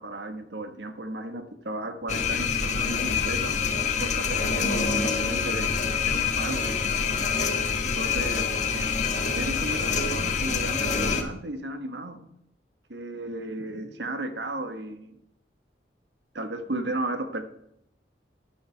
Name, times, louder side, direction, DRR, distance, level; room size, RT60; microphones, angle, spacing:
voice 1, 0.0-3.6 4.0-5.7 6.1-6.7 7.9-8.5 8.7-8.8 9.4-12.3 12.9-15.2 16.3-17.4, right 1 dB, 75° right, 1.5 m, -34 dB
sound 1, 2.1-11.2, left 5 dB, 40° left, 1.3 m, -26 dB
12.5 x 10.0 x 4.6 m
head